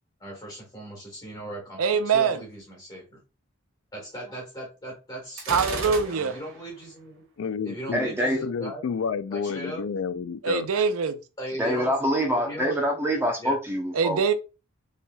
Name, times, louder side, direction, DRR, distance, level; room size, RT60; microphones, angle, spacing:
voice 1, 0.2-3.2 3.9-7.2 7.6-8.8 9.3-9.8 11.4-11.9 12.3-12.7 13.4-13.6, right 1 dB, 20° left, 1.6 m, -38 dB
voice 2, 1.8-2.4 5.5-6.3 10.4-11.2 13.9-14.3, right 6 dB, 85° right, 0.5 m, -23 dB
Gunshot gunfire, 5.4-6.6, right 3 dB, 65° right, 1.8 m, -33 dB
voice 3, 7.4-8.1 8.4-10.7, left 6 dB, 70° left, 0.4 m, -30 dB
voice 4, 7.9-8.4 11.6-14.2, equal, 10° right, 0.7 m, -25 dB
5.3 x 3.3 x 2.3 m
head